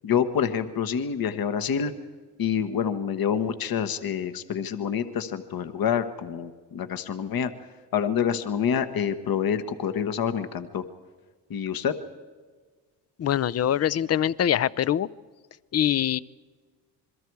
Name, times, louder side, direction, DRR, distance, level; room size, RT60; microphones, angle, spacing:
voice 1, 0.0-1.9 2.4-7.5 7.9-10.8 11.5-12.0, left 8 dB, 55° left, 10 dB, 1.4 m, -27 dB
voice 2, 13.2-15.1 15.7-16.2, left 10 dB, 35° left, 19 dB, 0.6 m, -23 dB
27.0 x 22.0 x 4.8 m, 1.5 s
cardioid pair, 85°, 42 cm